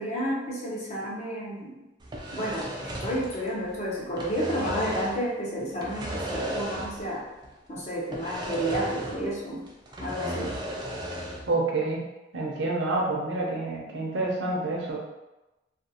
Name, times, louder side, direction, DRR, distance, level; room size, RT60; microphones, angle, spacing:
voice 1, 0.0-1.8 2.3-7.2 7.7-9.6 10.0-10.6, equal, 35° left, -4 dB, 0.6 m, -31 dB
sound 1, 2.0-3.8 4.0-5.3 5.8-7.2 7.4-7.5 8.1-9.4 9.7-11.5, right 1 dB, 20° right, 0.3 m, -35 dB
voice 2, 11.5-12.0 12.3-15.0, right 2 dB, 65° right, -2 dB, 0.6 m, -28 dB
2.5 x 2.3 x 2.7 m, 1.0 s
head